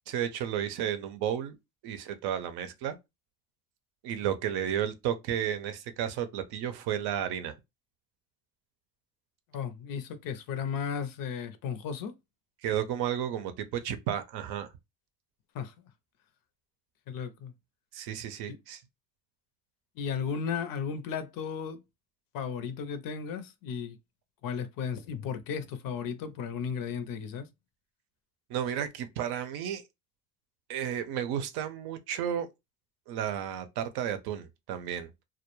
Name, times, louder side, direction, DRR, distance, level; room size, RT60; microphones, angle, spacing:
voice 1, 0.1-1.6 1.8-3.0 4.0-7.5 12.6-14.7 17.9-18.8 28.5-29.8 30.7-32.5 33.1-35.1, right 9 dB, 70° right, 0.6 m, -32 dB
voice 2, 9.5-12.2 15.5-15.7 17.1-17.5 18.5-18.6 20.0-21.8 22.3-24.0 24.4-27.5, left 7 dB, 60° left, 0.5 m, -35 dB
2.2 x 2.1 x 2.9 m
supercardioid pair, 90°, 39 cm